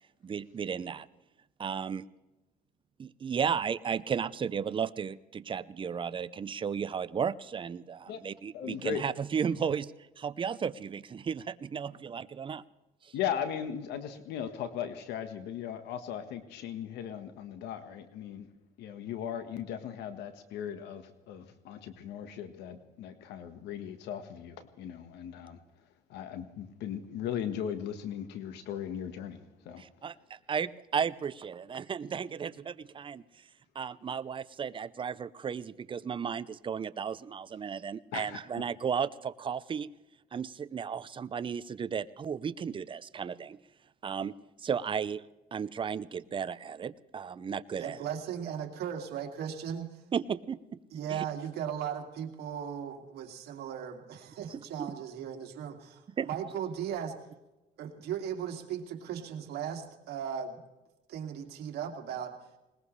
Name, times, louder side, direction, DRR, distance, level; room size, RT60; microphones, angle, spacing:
voice 1, 0.2-1.1 1.6-2.1 3.0-12.6 13.0-13.1 29.8-33.2 33.7-39.9 40.3-43.6 44.0-45.2 45.5-48.0 50.1-50.8 51.1-51.2 54.5-54.9 56.2-56.3, right 7 dB, 30° right, 15 dB, 0.6 m, -34 dB
voice 2, 8.5-9.0 13.1-18.5 18.8-25.6 26.1-29.4 29.6-29.8 38.1-38.4, left 9 dB, 80° left, 9 dB, 1.5 m, -38 dB
voice 3, 47.8-50.0 50.9-57.1 57.8-60.6 61.1-62.3, right 8 dB, 75° right, 3 dB, 2.5 m, -37 dB
20.5 x 20.0 x 3.3 m, 1.0 s
cardioid pair, 110°, 17 cm